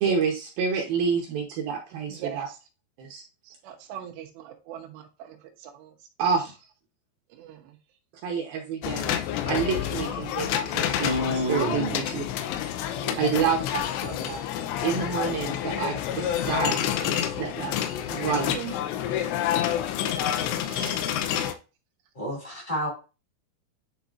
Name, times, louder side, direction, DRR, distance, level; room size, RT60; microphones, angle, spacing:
voice 1, 0.0-2.5 3.0-3.2 6.2-6.5 8.2-9.2 9.5-12.2 13.2-14.4 14.8-17.8 18.1-18.6, right 6 dB, 70° right, 1 dB, 2.4 m, -28 dB
voice 2, 2.1-2.6 3.4-6.6 7.3-7.8 9.7-10.3 11.7-12.1 12.8-13.4 14.6-15.9 16.3-16.7 18.3-18.8 20.1-21.0, right 10 dB, 90° right, 3 dB, 3.2 m, -43 dB
sound 1, 8.8-21.5, left 10 dB, 90° left, 2.9 m, -28 dB
voice 3, 11.0-12.0 22.1-22.9, equal, 25° left, -3 dB, 0.9 m, -29 dB
10.5 x 4.1 x 2.4 m, 0.32 s
omnidirectional pair, 4.9 m